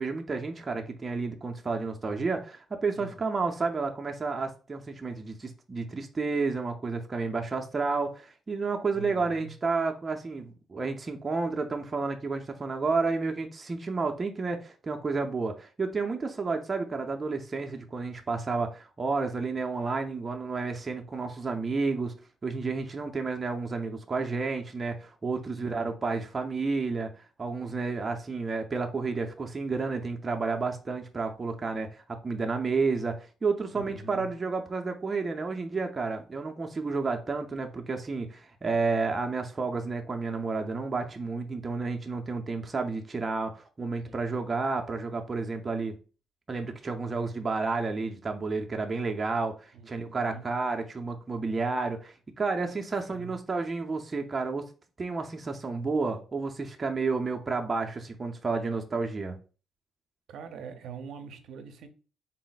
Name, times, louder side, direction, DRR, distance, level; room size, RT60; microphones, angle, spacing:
voice 1, 0.0-22.1 22.4-45.9 46.5-54.7 55.0-59.4, right 4 dB, 30° right, 0.5 m, -31 dB
voice 2, 8.9-9.5 25.5-25.9 33.7-34.3 44.1-44.2 49.7-50.4 53.1-53.4 60.3-61.9, right 5 dB, 75° right, 0.5 m, -44 dB
3.9 x 2.0 x 4.0 m
cardioid pair, 90°, 0 cm